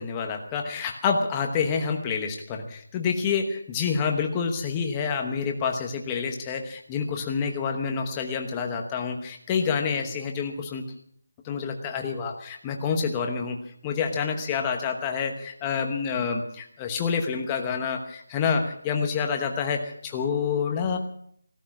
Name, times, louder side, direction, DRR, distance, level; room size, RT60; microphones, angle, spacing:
voice 1, 0.0-10.8 11.4-13.6 13.8-21.0, left 6 dB, 10° left, 3 dB, 1.0 m, -28 dB
17.0 x 13.0 x 6.1 m, 0.66 s
figure-of-eight pair, 180°, 0 cm